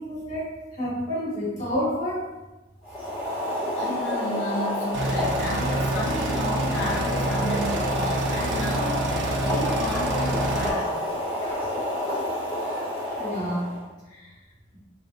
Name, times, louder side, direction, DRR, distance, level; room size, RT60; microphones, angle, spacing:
voice 1, 0.0-2.2 11.3-11.8 13.2-13.8 14.1-14.3, equal, 40° left, -8 dB, 1.3 m, -30 dB
Boiling, 2.8-13.8, left 1 dB, 10° right, 1.2 m, -28 dB
voice 2, 3.7-11.2, left 1 dB, 70° left, -2 dB, 0.7 m, -33 dB
sound 1, 4.9-10.7, right 2 dB, 60° right, 0.4 m, -28 dB
3.2 x 2.5 x 2.5 m, 1.1 s
head